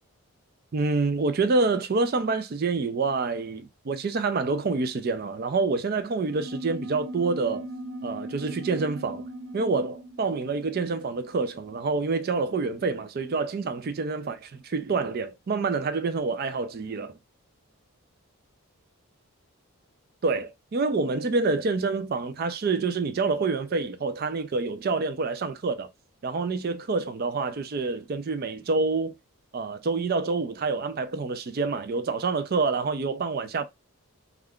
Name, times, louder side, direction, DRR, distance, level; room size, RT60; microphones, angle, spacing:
voice 1, 0.7-7.7 8.0-9.3 9.5-17.2 20.2-25.9 26.2-29.1 29.5-33.6, right 4 dB, 40° right, 0.4 m, -27 dB
sound 1, 6.2-12.1, right 1 dB, 60° right, 0.9 m, -39 dB
2.3 x 2.3 x 3.5 m
head